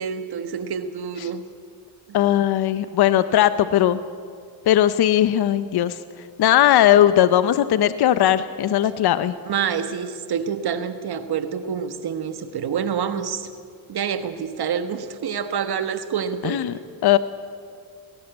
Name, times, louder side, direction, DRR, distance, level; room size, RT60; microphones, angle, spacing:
voice 1, 0.0-1.4 9.4-13.5 13.9-16.6, right 7 dB, 50° right, 10 dB, 1.4 m, -27 dB
voice 2, 2.1-4.0 4.7-6.0 6.4-9.3 16.4-16.7 17.0-17.2, left 11 dB, 55° left, 14 dB, 0.8 m, -18 dB
19.0 x 17.0 x 8.0 m, 2.2 s
cardioid pair, 85°, 47 cm